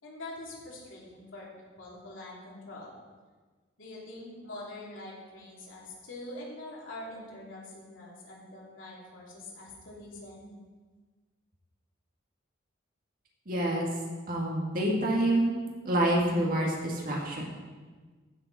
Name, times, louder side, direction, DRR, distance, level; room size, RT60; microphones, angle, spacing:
voice 1, 0.0-2.9 3.8-10.5, left 1 dB, 75° left, -5 dB, 3.1 m, -44 dB
voice 2, 13.5-13.9 14.3-15.6 15.8-17.5, right 1 dB, 45° right, -1 dB, 2.0 m, -27 dB
15.0 x 7.1 x 4.2 m, 1.4 s
head